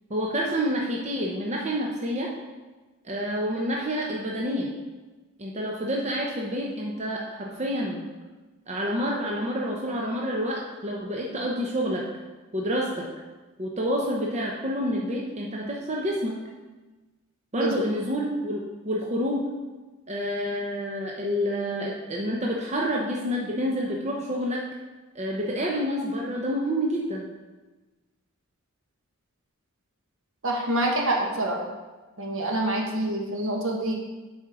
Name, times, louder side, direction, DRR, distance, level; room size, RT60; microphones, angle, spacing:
voice 1, 0.1-2.3 3.0-4.7 5.4-8.0 8.7-12.0 12.5-13.0 13.6-16.4 17.5-19.5 20.1-24.6 25.1-27.2, equal, 30° right, -2 dB, 0.7 m, -28 dB
voice 2, 30.4-31.6 32.2-33.9, right 1 dB, 65° right, -1 dB, 1.3 m, -26 dB
7.4 x 4.4 x 4.8 m, 1.2 s
head